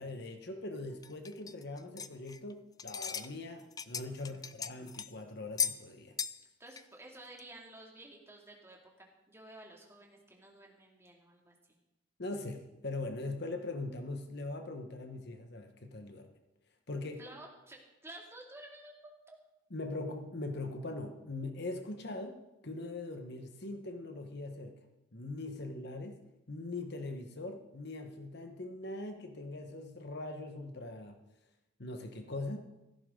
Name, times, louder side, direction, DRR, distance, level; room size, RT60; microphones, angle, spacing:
voice 1, 0.0-6.2 12.2-16.4 16.9-17.2 19.7-22.4 22.6-24.8 25.1-26.2 26.5-31.2 31.8-32.6, left 2 dB, 55° left, 5 dB, 1.3 m, -41 dB
sound 1, 1.0-2.5 2.8-3.3 3.6-5.1 5.6-5.8 6.2-6.4 6.7-6.8 7.4-7.5, left 7 dB, 20° left, 0.4 m, -37 dB
voice 2, 4.2-4.7 6.6-11.5 17.2-19.4 25.5-25.7, right 1 dB, 15° right, -1 dB, 2.5 m, -53 dB
16.5 x 14.5 x 3.9 m, 0.98 s
head